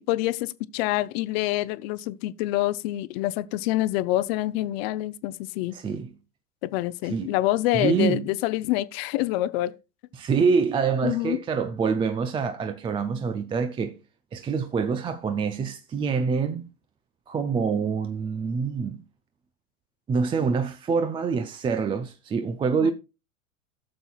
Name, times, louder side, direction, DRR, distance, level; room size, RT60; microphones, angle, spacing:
voice 1, 0.0-5.7 6.6-9.8 11.0-11.4 22.8-22.9, left 16 dB, 45° left, 0.6 m, -26 dB
voice 2, 5.7-6.1 7.1-7.3 7.7-8.3 10.2-14.0 14.3-16.7 17.3-19.0 20.1-22.9, right 5 dB, 15° right, 0.4 m, -26 dB
14.5 x 6.8 x 2.4 m
hypercardioid pair, 90°, 41 cm